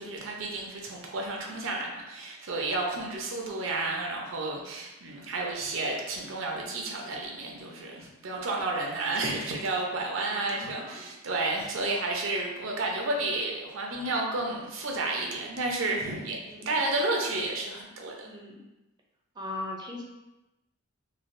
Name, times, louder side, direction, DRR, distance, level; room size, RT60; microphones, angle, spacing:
voice 1, 0.0-16.4 16.7-18.3, right 2 dB, 70° right, 0 dB, 0.6 m, -31 dB
voice 2, 10.3-11.1 16.5-16.8 18.2-18.6 19.3-20.0, left 2 dB, 20° right, -1 dB, 0.5 m, -40 dB
3.2 x 2.3 x 2.5 m, 0.98 s
head